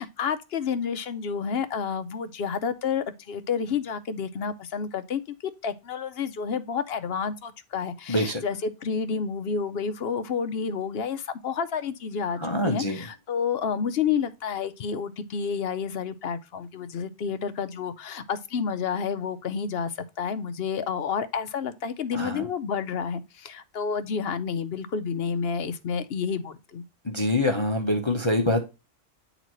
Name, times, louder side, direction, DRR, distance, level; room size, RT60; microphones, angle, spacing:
voice 1, 0.0-5.3 5.6-26.8, left 6 dB, 55° left, 0.8 m, -30 dB
voice 2, 8.1-8.4 12.4-13.0 22.1-22.5 27.0-28.6, left 1 dB, 25° left, 0.8 m, -25 dB
8.9 x 4.0 x 3.0 m
omnidirectional pair, 1.4 m